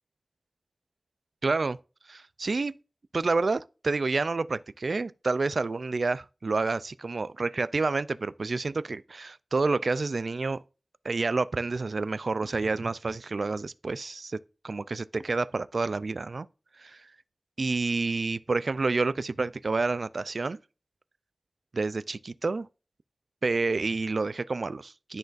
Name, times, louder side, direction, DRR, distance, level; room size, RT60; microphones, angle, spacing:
voice 1, 1.4-1.8 2.1-2.7 3.1-10.6 11.0-14.4 14.6-16.5 16.8-17.1 17.6-20.6 21.7-22.7 23.4-25.2, right 3 dB, 70° right, 0.3 m, -29 dB
12.0 x 3.9 x 2.5 m
wide cardioid pair, 70°, 0 cm